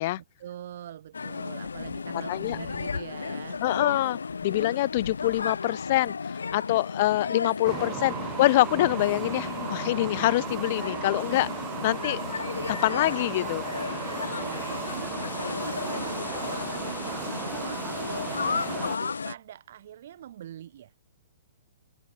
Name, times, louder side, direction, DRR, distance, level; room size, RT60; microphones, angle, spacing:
voice 1, 0.4-3.6 11.1-11.4 14.3-15.2 15.7-20.9, right 11 dB, 60° right, 5.4 m, -44 dB
sound 1, 1.1-19.3, left 5 dB, 85° left, 1.5 m, -34 dB
voice 2, 2.1-2.6 3.6-11.5 11.8-12.2 12.7-13.7, left 17 dB, 50° left, 0.4 m, -25 dB
sound 2, 7.6-19.0, right 12 dB, 25° right, 0.5 m, -37 dB
hypercardioid pair, 130°, 0 cm